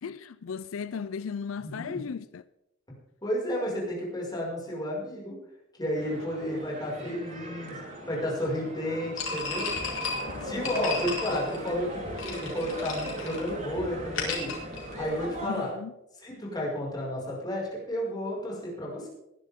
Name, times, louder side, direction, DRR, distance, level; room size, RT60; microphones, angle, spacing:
voice 1, 0.0-2.4 10.3-10.9 15.5-15.9, left 6 dB, 90° left, 0.4 m, -36 dB
voice 2, 1.6-2.0 3.2-5.4 5.8-7.8 8.1-9.7 10.4-14.5 15.0-15.7 16.2-19.1, equal, 20° left, 5.6 m, -32 dB
sound 1, 5.9-15.7, equal, 40° right, 3.9 m, -39 dB
sound 2, 9.2-15.4, left 3 dB, 70° left, 4.3 m, -35 dB
20.5 x 11.0 x 3.7 m
head